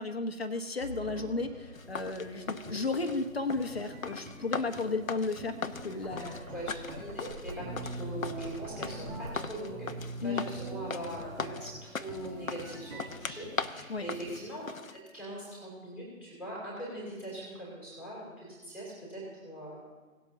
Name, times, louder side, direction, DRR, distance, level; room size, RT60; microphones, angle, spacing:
voice 1, 0.0-6.3 10.2-10.4 13.9-14.1, left 3 dB, 45° left, 7 dB, 1.1 m, -34 dB
sound 1, 0.8-14.4, right 2 dB, 65° right, 3.5 m, -44 dB
sound 2, 1.7-15.0, left 5 dB, 70° left, 0.9 m, -40 dB
Knock, 5.7-9.8, right 1 dB, 85° right, 2.4 m, -48 dB
voice 2, 6.1-19.8, right 1 dB, 5° right, -7 dB, 3.0 m, -42 dB
19.0 x 8.1 x 2.7 m, 1.3 s
figure-of-eight pair, 155°, 42 cm